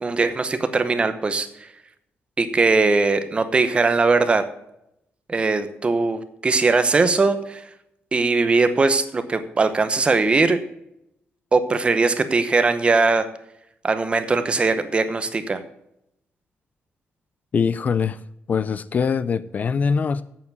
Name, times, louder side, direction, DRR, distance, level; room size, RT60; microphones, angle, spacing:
voice 1, 0.0-1.5 2.4-4.5 5.3-7.6 8.1-10.6 11.5-13.3 13.8-15.6, right 3 dB, 25° right, 10 dB, 0.9 m, -20 dB
voice 2, 17.5-18.2 18.5-20.2, left 6 dB, 40° left, 16 dB, 0.4 m, -22 dB
8.3 x 7.0 x 8.0 m, 0.79 s
wide cardioid pair, 160°, 4 cm